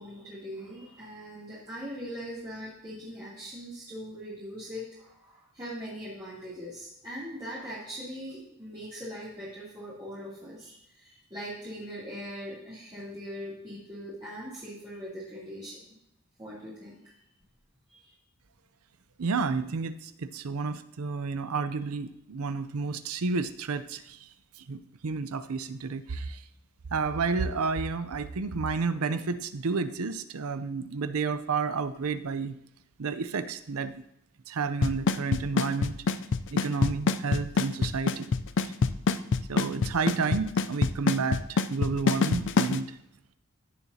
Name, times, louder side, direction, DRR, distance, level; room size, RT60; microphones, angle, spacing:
voice 1, 0.0-15.8 16.4-17.0 17.9-18.1, equal, 20° right, -11 dB, 2.8 m, -41 dB
voice 2, 19.2-24.2 24.7-26.4 26.9-32.5 33.0-33.9 34.5-36.0 36.5-38.3 38.6-38.7 39.5-42.9, right 4 dB, 80° right, 12 dB, 0.6 m, -31 dB
Drum kit / Snare drum / Bass drum, 34.8-42.8, left 4 dB, 55° left, 0.4 m, -24 dB
15.5 x 7.0 x 2.8 m, 0.80 s
head